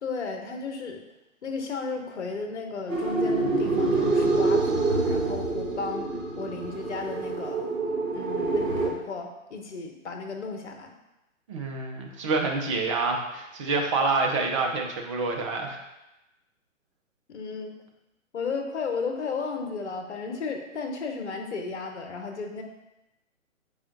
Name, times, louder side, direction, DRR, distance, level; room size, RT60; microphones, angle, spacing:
voice 1, 0.0-1.0 1.4-7.6 8.1-10.9 17.3-17.7 18.3-22.6, left 4 dB, 60° left, 4 dB, 1.1 m, -34 dB
sound 1, 2.9-8.9, right 3 dB, 75° right, 2.2 m, -26 dB
voice 2, 11.5-15.8, right 3 dB, 25° right, 1 dB, 0.7 m, -27 dB
7.2 x 4.9 x 2.7 m, 0.96 s
figure-of-eight pair, 130°, 39 cm